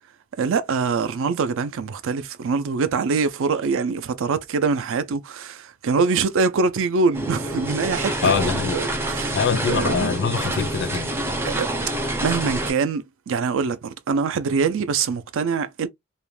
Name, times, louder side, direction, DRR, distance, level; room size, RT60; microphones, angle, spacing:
voice 1, 0.4-8.4 8.7-10.1 11.4-11.7 12.2-15.9, right 5 dB, 65° right, 0.4 m, -24 dB
sound 1, 7.1-12.7, right 1 dB, 10° right, 0.5 m, -27 dB
voice 2, 8.2-8.8 9.3-11.1, left 6 dB, 50° left, 0.4 m, -23 dB
2.5 x 2.1 x 3.1 m
head